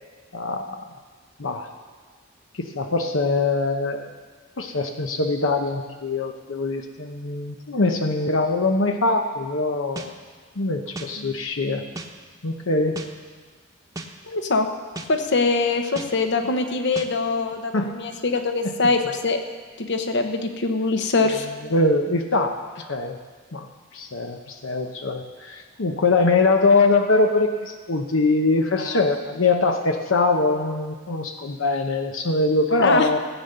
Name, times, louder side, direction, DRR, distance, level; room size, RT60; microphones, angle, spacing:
voice 1, 0.3-0.8 1.4-1.7 2.6-4.1 4.6-10.1 10.6-11.9 12.4-13.0 17.7-17.9 21.7-22.6 22.9-23.2 23.5-23.7 23.9-33.2, left 3 dB, 85° left, 5 dB, 0.9 m, -22 dB
sound 1, 10.0-10.1 10.9-11.1 11.9-12.1 13.0-13.1 13.9-14.1 14.9-15.1 16.0-16.1 16.9-17.1, right 2 dB, 15° right, 0.9 m, -34 dB
voice 2, 14.3-14.7 15.1-19.4 19.8-21.5 28.8-29.0 32.8-33.2, left 3 dB, 60° left, 6 dB, 1.1 m, -23 dB
15.5 x 9.0 x 6.7 m, 1.5 s
head